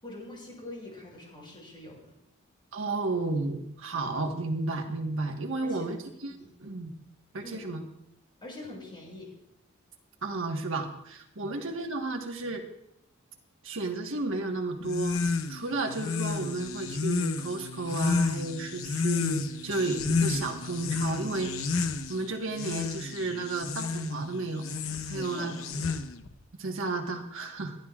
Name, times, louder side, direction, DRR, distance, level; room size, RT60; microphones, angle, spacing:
voice 1, 0.0-2.0 5.6-6.0 6.3-6.5 7.4-7.7 8.4-9.3 11.4-11.7 25.1-26.0, left 1 dB, 25° left, -3 dB, 6.5 m, -44 dB
voice 2, 2.7-6.3 6.6-6.9 7.3-7.8 10.2-12.6 13.6-15.2 15.5-21.5 22.1-24.7 25.0-25.8 26.6-27.8, right 2 dB, 60° right, 2 dB, 1.4 m, -32 dB
sound 1, 14.8-26.3, left 4 dB, 70° left, 0.9 m, -31 dB
30.0 x 11.5 x 2.4 m, 0.79 s
head